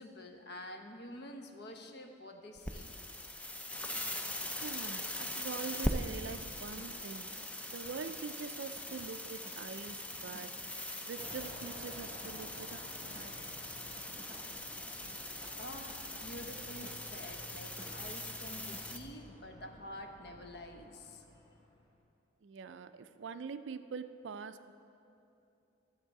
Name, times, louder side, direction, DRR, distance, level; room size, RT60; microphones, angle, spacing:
voice 1, 0.0-2.9 15.3-21.3, left 1 dB, 55° left, 5 dB, 0.8 m, -48 dB
sound 1, 2.6-19.0, left 1 dB, 5° left, 0.4 m, -41 dB
voice 2, 4.6-10.6 11.0-13.3 22.4-24.7, right 5 dB, 65° right, 11 dB, 0.4 m, -44 dB
sound 2, 6.8-7.0 7.4-10.7 11.3-12.8 13.1-14.5 14.8-18.9, right 1 dB, 15° right, 1.0 m, -57 dB
Fixed-wing aircraft airplane, 11.2-22.0, equal, 25° left, 1.2 m, -54 dB
13.5 x 7.4 x 4.7 m, 2.7 s
head